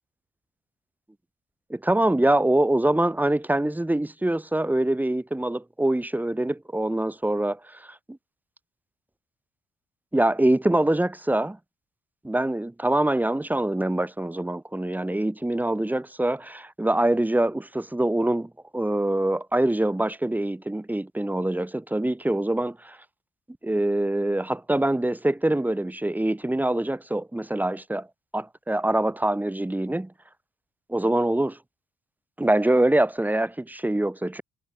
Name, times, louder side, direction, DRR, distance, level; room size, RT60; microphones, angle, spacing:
voice 1, 1.7-8.2 10.1-11.6 12.2-23.0 23.6-28.1 28.3-30.1 30.9-31.6 32.4-34.4, right 1 dB, 10° right, 1.8 m, -24 dB
cardioid pair, 90°, 20 cm